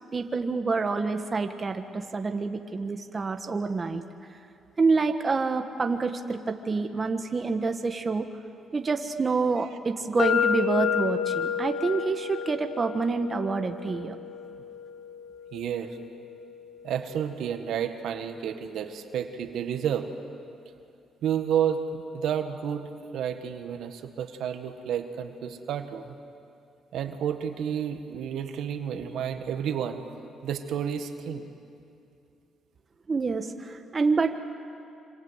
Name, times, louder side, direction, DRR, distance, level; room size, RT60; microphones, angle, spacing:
voice 1, 0.1-4.0 4.8-8.3 8.7-14.2 33.1-34.4, right 4 dB, 35° right, 6 dB, 1.5 m, -27 dB
sound 1, 10.2-18.1, left 8 dB, 65° left, 1.0 m, -32 dB
voice 2, 15.5-16.0 16.8-20.1 21.2-26.1 26.9-30.0 30.4-31.5, right 8 dB, 80° right, 7 dB, 1.7 m, -31 dB
26.5 x 26.5 x 8.2 m, 2.6 s
cardioid pair, 90°, 0 cm